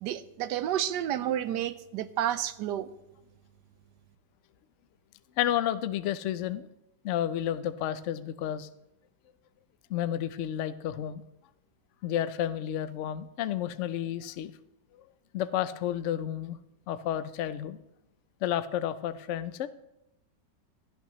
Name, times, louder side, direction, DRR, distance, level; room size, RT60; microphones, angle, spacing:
voice 1, 0.0-2.9, right 11 dB, 75° right, 14 dB, 1.2 m, -30 dB
voice 2, 5.4-6.7 7.0-8.7 9.9-11.2 12.0-14.5 15.3-16.6 16.9-17.8 18.4-19.7, left 11 dB, 90° left, 13 dB, 0.6 m, -31 dB
16.5 x 11.5 x 3.0 m, 0.88 s
omnidirectional pair, 1.9 m